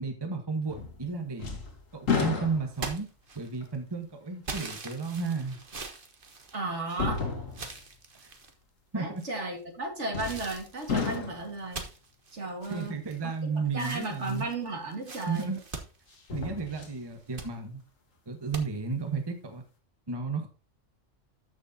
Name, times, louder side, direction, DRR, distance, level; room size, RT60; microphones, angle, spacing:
voice 1, 0.0-1.6 1.9-3.1 3.3-5.6 8.2-8.3 8.9-9.2 12.7-14.5 15.3-15.6 16.3-17.8 18.3-19.6 20.1-20.5, right 4 dB, 20° right, 5 dB, 1.1 m, -33 dB
sound 1, 0.7-1.1 1.4-3.0 3.6-3.7 5.5-5.6 6.9-7.8 10.1-10.6 10.9-11.6 14.6-14.7 16.1-17.0 17.4-17.5, left 5 dB, 80° left, 2.0 m, -32 dB
sound 2, 2.7-3.8 4.4-7.1 7.5-8.5 9.2-9.6 10.2-13.4 13.7-16.7 17.1-17.5 18.5-18.6, right 4 dB, 45° right, 1.4 m, -42 dB
voice 2, 6.5-7.2 8.9-11.8 12.3-13.0 13.5-15.5, right 2 dB, 60° right, 3 dB, 2.4 m, -34 dB
13.0 x 6.3 x 2.8 m, 0.35 s
omnidirectional pair, 1.3 m